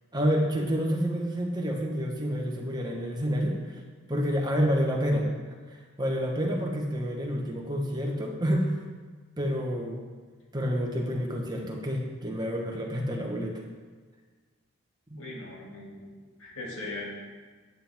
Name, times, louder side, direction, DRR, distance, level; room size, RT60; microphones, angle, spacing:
voice 1, 0.1-3.8 4.1-5.3 5.7-8.8 9.4-10.0 10.5-13.6 15.1-15.2, equal, 20° right, 0 dB, 1.2 m, -28 dB
voice 2, 15.2-16.1 16.4-17.0, left 2 dB, 70° left, -3 dB, 2.4 m, -39 dB
10.0 x 9.2 x 3.6 m, 1.5 s
head